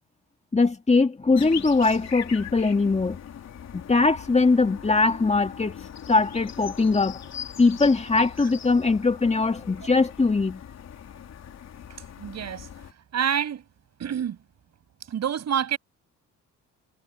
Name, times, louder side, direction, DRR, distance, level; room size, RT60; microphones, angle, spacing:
voice 1, 0.5-3.2 3.7-5.7 6.1-7.2 7.6-10.6, left 3 dB, 20° left, 2.1 m, -21 dB
sound 1, 1.4-12.9, left 9 dB, 60° left, 3.3 m, -41 dB
voice 2, 11.9-12.7 13.1-13.6 14.0-14.4 15.1-15.8, right 8 dB, 60° right, 6.4 m, -27 dB
cardioid pair, 90°, 30 cm